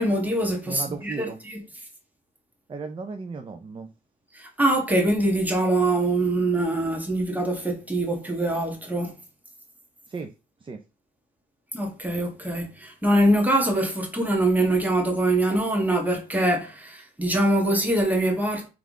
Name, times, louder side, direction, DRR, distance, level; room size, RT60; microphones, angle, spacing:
voice 1, 0.0-1.6 4.3-9.1 11.7-18.7, right 1 dB, 10° right, 1.5 m, -23 dB
voice 2, 0.7-1.4 2.7-3.9 10.1-10.3 10.6-10.8, right 4 dB, 25° right, 0.5 m, -35 dB
3.6 x 3.3 x 3.6 m
cardioid pair, 90°, 20 cm